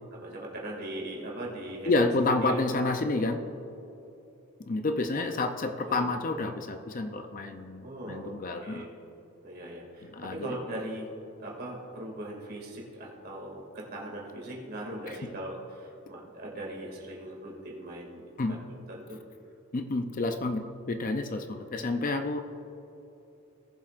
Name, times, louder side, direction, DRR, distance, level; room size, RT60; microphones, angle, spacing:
voice 1, 0.1-2.1 2.4-2.6 5.9-6.1 7.8-8.9 9.4-11.1 11.4-18.6 18.9-19.2, right 1 dB, 45° right, -2 dB, 2.3 m, -40 dB
voice 2, 1.9-3.4 4.6-8.9 10.0-10.6 15.1-15.2 18.4-18.6 19.7-22.4, left 2 dB, 40° left, 7 dB, 0.5 m, -29 dB
19.0 x 7.4 x 2.5 m, 3.0 s
head